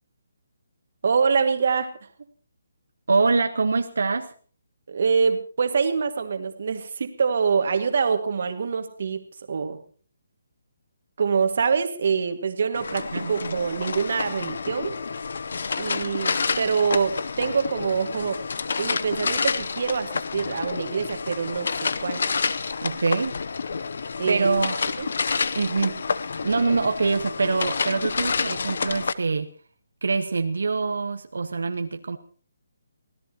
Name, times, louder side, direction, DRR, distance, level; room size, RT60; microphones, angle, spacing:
voice 1, 1.0-1.9 4.9-9.8 11.2-14.9 15.8-18.4 18.8-22.2 24.2-24.5 25.0-25.1, right 5 dB, 45° right, 7 dB, 1.9 m, -25 dB
voice 2, 3.1-4.3 13.1-13.5 22.8-23.4 24.3-24.8 25.5-26.0 26.4-29.5 30.0-32.2, right 4 dB, 80° right, 6 dB, 1.3 m, -24 dB
sound 1, 12.7-29.1, left 5 dB, 55° left, 0.7 m, -29 dB
24.5 x 16.5 x 2.9 m, 0.41 s
hypercardioid pair, 175°, 0 cm